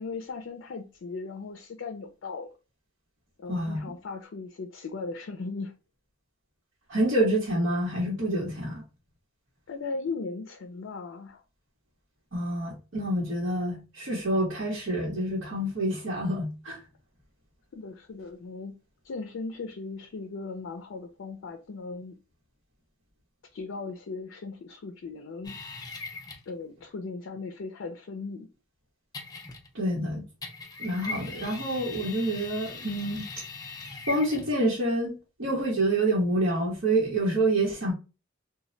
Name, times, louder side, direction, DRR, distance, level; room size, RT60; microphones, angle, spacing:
voice 1, 0.0-2.6 3.4-5.8 9.7-11.4 17.7-18.8 19.0-22.2 23.5-25.6 26.5-28.5, left 4 dB, 85° left, 0.4 m, -37 dB
voice 2, 3.5-3.8 6.9-8.8 12.3-16.8 29.7-30.2 30.8-33.3 34.1-37.9, right 1 dB, 80° right, 1.0 m, -27 dB
sound 1, 25.4-26.5 29.1-29.9 30.4-34.6, left 4 dB, 20° left, 0.5 m, -40 dB
2.2 x 2.1 x 3.8 m
head